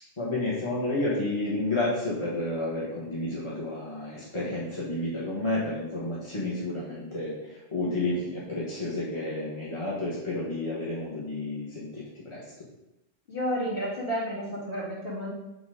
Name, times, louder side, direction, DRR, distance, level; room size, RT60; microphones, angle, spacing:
voice 1, 0.2-12.4, left 2 dB, 25° left, -7 dB, 1.4 m, -31 dB
voice 2, 13.3-15.3, equal, 45° left, -6 dB, 2.4 m, -31 dB
7.0 x 4.0 x 5.1 m, 0.95 s
omnidirectional pair, 1.3 m